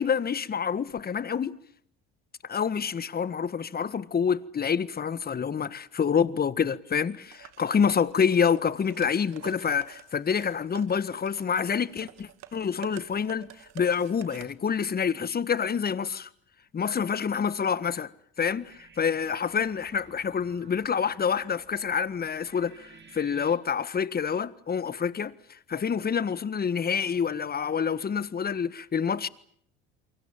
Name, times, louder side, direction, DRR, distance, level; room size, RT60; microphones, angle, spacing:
voice 1, 0.0-1.6 2.5-13.5 13.7-16.3 16.7-18.1 18.4-29.3, left 7 dB, 30° left, 1.7 m, -27 dB
sound 1, 7.3-14.5, right 14 dB, 65° right, 2.1 m, -49 dB
sound 2, 18.4-23.6, right 5 dB, 35° right, 4.4 m, -55 dB
29.0 x 24.0 x 7.3 m
hypercardioid pair, 75°, 29 cm